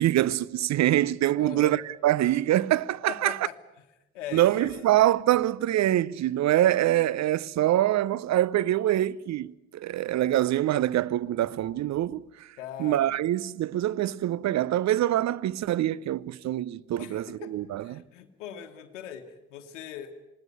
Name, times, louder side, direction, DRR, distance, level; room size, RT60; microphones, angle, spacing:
voice 1, 0.0-3.5 4.3-12.2 12.8-18.0, right 13 dB, 50° right, 0.7 m, -25 dB
voice 2, 1.4-1.8 3.1-3.5 4.1-4.9 12.6-13.1 17.0-17.5 17.8-20.1, left 9 dB, 80° left, 1.2 m, -41 dB
20.0 x 18.0 x 9.5 m
figure-of-eight pair, 45°, 36 cm